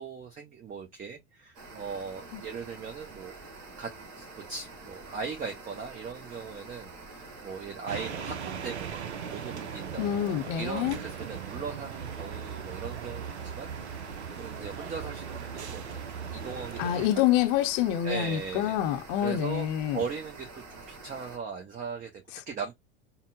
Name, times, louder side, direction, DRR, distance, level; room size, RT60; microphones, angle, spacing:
voice 1, 0.0-3.3 3.8-10.0 10.6-13.7 14.0-17.2 18.0-18.8 19.2-19.7 19.9-22.7, right 5 dB, 25° right, 0.9 m, -39 dB
sound 1, 1.5-21.4, right 3 dB, 45° right, 1.5 m, -47 dB
sound 2, 7.9-17.1, right 7 dB, 75° right, 0.6 m, -39 dB
voice 2, 10.0-11.0 16.8-20.0, left 11 dB, 45° left, 0.8 m, -27 dB
5.5 x 2.2 x 2.5 m
figure-of-eight pair, 75°, 34 cm